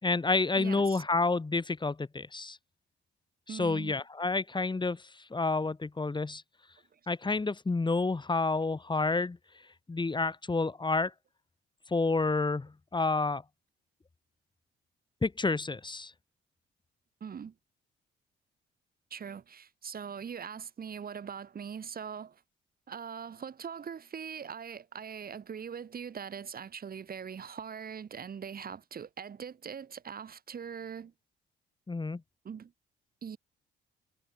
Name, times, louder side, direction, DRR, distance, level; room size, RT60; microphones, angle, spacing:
voice 1, 0.0-2.6 3.5-5.0 5.3-6.4 7.1-9.4 9.9-11.1 11.9-13.4 15.2-16.1 31.9-32.2, left 3 dB, 25° left, 4.3 m, -29 dB
voice 2, 0.6-1.0 3.5-4.0 6.9-7.0 17.2-17.5 19.1-22.4 22.9-31.1 32.4-32.7 33.2-33.4, right 7 dB, 50° right, 4.5 m, -41 dB
cardioid pair, 90°, 20 cm